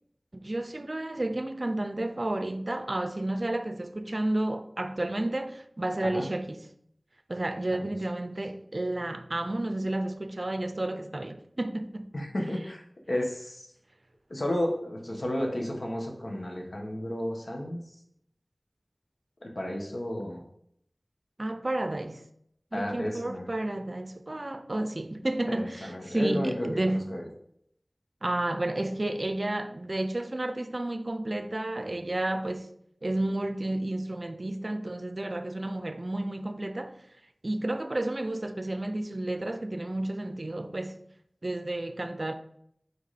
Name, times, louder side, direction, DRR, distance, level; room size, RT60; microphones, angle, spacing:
voice 1, 0.3-6.7 7.3-12.1 21.4-22.2 22.7-27.2 28.2-32.7 33.0-36.9 37.4-41.0 41.4-42.3, right 1 dB, 55° right, 0.5 m, -31 dB
voice 2, 12.1-12.8 13.1-13.6 14.3-17.8 19.4-20.4 22.7-23.4 25.5-27.2, left 1 dB, 70° left, 1.3 m, -32 dB
5.2 x 4.8 x 4.2 m
wide cardioid pair, 50°, 0 cm